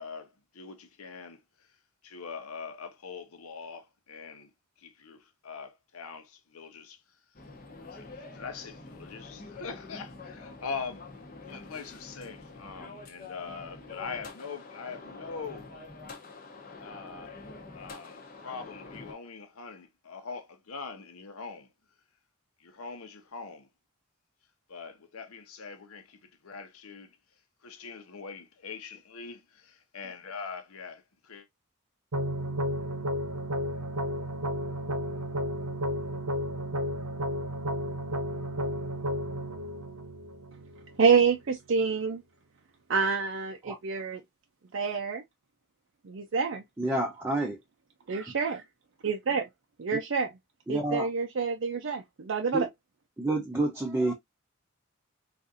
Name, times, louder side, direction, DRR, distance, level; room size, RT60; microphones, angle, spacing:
voice 1, 0.0-1.4 2.0-4.5 4.8-7.0 7.8-11.0 11.5-15.7 16.8-17.3 17.7-21.7 22.6-23.7 24.7-27.2 27.6-29.4 29.7-31.5, left 5 dB, 85° left, 0.9 m, -42 dB
sound 1, 7.3-19.1, left 3 dB, 40° left, 0.8 m, -46 dB
sound 2, 32.1-41.1, equal, 90° right, 0.9 m, -32 dB
voice 2, 41.0-42.2 42.9-44.2 44.7-45.2 46.0-46.6 48.1-48.6 49.0-49.4 49.8-50.3 50.7-52.7, right 5 dB, 60° right, 0.5 m, -27 dB
voice 3, 46.8-47.6 49.9-50.0 50.7-51.1 52.5-52.7 53.2-54.1, right 2 dB, 10° right, 0.5 m, -29 dB
3.9 x 2.5 x 2.5 m
head